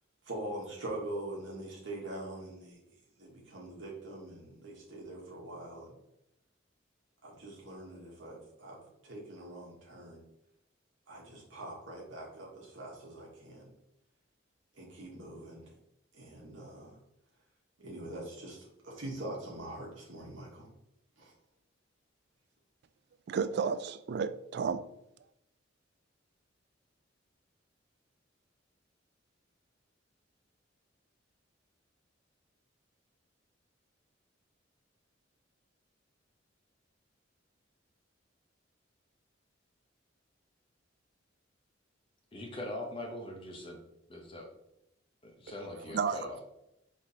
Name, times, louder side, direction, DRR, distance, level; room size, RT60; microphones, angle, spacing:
voice 1, 0.2-2.8 3.2-5.9 7.2-10.2 11.1-13.7 14.7-15.7 16.1-17.0 17.8-20.7 21.2-21.3, right 1 dB, 75° right, -3 dB, 1.2 m, -43 dB
voice 2, 23.3-24.9 45.9-46.2, right 6 dB, 55° right, 13 dB, 0.3 m, -32 dB
voice 3, 42.3-43.8 44.1-44.5 45.2-46.4, left 1 dB, 25° left, 0 dB, 0.9 m, -41 dB
5.8 x 3.1 x 2.8 m, 0.84 s
head